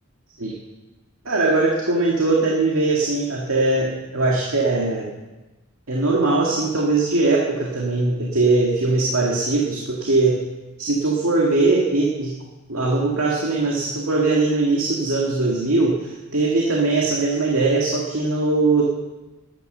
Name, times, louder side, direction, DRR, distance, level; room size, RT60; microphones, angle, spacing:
voice 1, 1.3-5.1 5.9-10.4 10.8-12.3 12.7-18.8, right 3 dB, 75° right, -2 dB, 2.1 m, -20 dB
12.5 x 9.7 x 6.8 m, 1.1 s
head